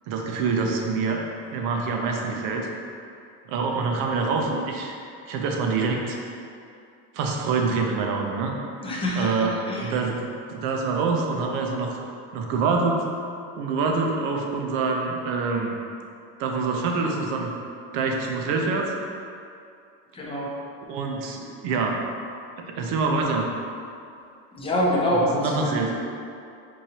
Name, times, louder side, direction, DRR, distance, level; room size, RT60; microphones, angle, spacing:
voice 1, 0.1-2.7 3.5-5.0 5.3-6.2 7.1-8.5 9.2-9.5 9.8-12.0 12.3-13.0 13.6-15.8 16.4-17.5 17.9-18.9 20.9-22.1 22.6-23.5 25.1-25.9, right 4 dB, 65° right, 1 dB, 0.6 m, -26 dB
voice 2, 8.8-10.0 20.1-20.5 24.5-25.9, left 1 dB, 15° left, -4 dB, 0.6 m, -25 dB
4.7 x 2.7 x 2.8 m, 2.5 s
cardioid pair, 125°, 36 cm